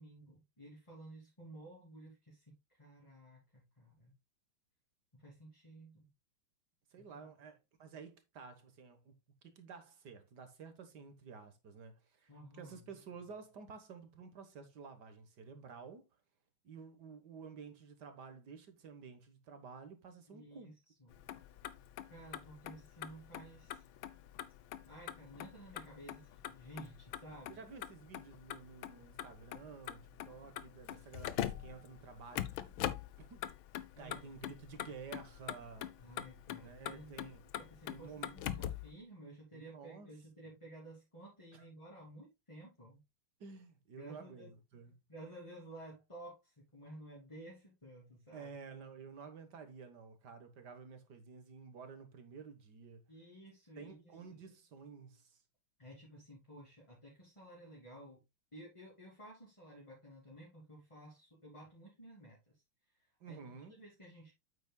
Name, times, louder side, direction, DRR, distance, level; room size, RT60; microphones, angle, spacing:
voice 1, 0.0-4.1 5.1-6.1 7.0-7.3 12.3-12.9 20.3-20.7 21.0-21.2 22.1-23.8 24.9-27.6 33.9-34.3 36.0-37.3 37.5-43.0 43.9-44.5 45.1-48.5 53.1-54.1 55.8-58.2 58.5-62.6 62.9-63.4 63.7-64.3, right 1 dB, 15° left, 3.0 m, -54 dB
voice 2, 6.9-9.2 9.4-16.0 16.6-20.7 27.5-32.7 33.2-33.5 34.0-36.1 36.6-37.5 37.9-38.3 39.5-40.1 41.5-41.6 43.4-45.0 48.3-53.0 53.8-55.4 63.2-63.8, right 5 dB, 55° right, 1.7 m, -52 dB
Motor vehicle (road), 21.1-38.9, left 11 dB, 70° left, 1.4 m, -44 dB
8.7 x 8.3 x 2.3 m
omnidirectional pair, 2.3 m